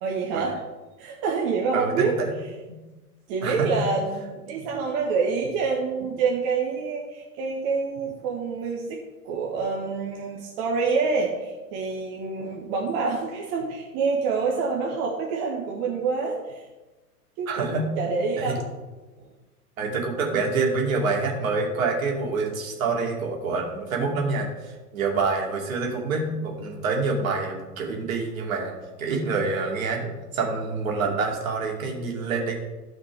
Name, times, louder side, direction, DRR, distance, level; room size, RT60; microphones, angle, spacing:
voice 1, 0.0-0.6 1.0-2.1 3.3-9.0 9.2-16.6 17.4-18.7 19.2-19.3, right 4 dB, 35° right, -2 dB, 1.5 m, -27 dB
voice 2, 1.7-2.3 3.4-3.7 4.6-4.7 17.5-17.9 18.4-18.5 19.8-28.7 29.0-32.5, right 4 dB, 55° right, 0 dB, 2.8 m, -27 dB
13.0 x 5.2 x 5.0 m, 1.2 s
figure-of-eight pair, 105°, 48 cm